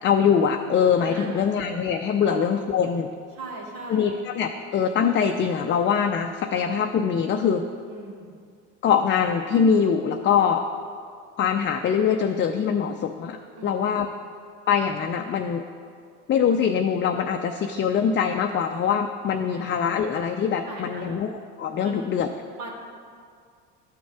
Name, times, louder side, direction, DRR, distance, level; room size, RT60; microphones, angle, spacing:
voice 1, 0.0-3.1 3.9-7.7 8.8-10.6 11.4-14.1 14.7-15.6 16.3-22.3, left 7 dB, 35° left, 5 dB, 0.5 m, -23 dB
voice 2, 1.0-1.5 2.2-2.4 3.3-4.2 7.9-8.4 13.6-13.7 14.0-14.1 19.5-19.8 20.7-21.2 21.8-22.0 22.6-22.7, right 3 dB, 70° right, -4 dB, 2.0 m, -39 dB
12.0 x 6.1 x 3.5 m, 2.2 s
hypercardioid pair, 70°, 35 cm